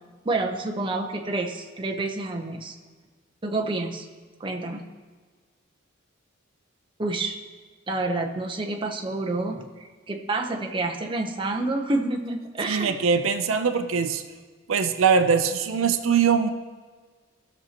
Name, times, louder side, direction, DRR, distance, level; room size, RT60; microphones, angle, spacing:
voice 1, 0.2-2.8 3.4-4.1 4.4-4.8 7.0-7.4 7.9-12.9, right 2 dB, 25° right, 2 dB, 0.7 m, -28 dB
voice 2, 12.7-14.2 14.7-16.5, right 6 dB, 75° right, 8 dB, 0.5 m, -22 dB
17.0 x 6.4 x 2.9 m, 1.5 s
head